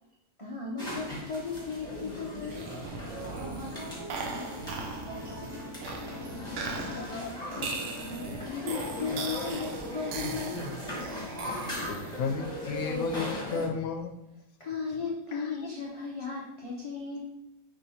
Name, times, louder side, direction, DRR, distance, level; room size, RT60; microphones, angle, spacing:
voice 1, 0.4-2.7 6.5-7.0 8.0-10.8 14.6-17.2, left 5 dB, 40° left, -4 dB, 0.4 m, -36 dB
sound 1, 0.8-13.7, left 1 dB, 5° left, 1.4 m, -38 dB
sound 2, 2.4-12.3, right 4 dB, 65° right, 0.8 m, -39 dB
sound 3, 3.1-7.7, equal, 25° right, 1.4 m, -46 dB
voice 2, 3.2-6.3, right 2 dB, 50° right, -6 dB, 1.8 m, -45 dB
voice 3, 11.8-14.2 15.3-15.7, left 5 dB, 75° left, 4 dB, 1.1 m, -33 dB
5.8 x 3.2 x 2.8 m, 0.87 s
omnidirectional pair, 1.6 m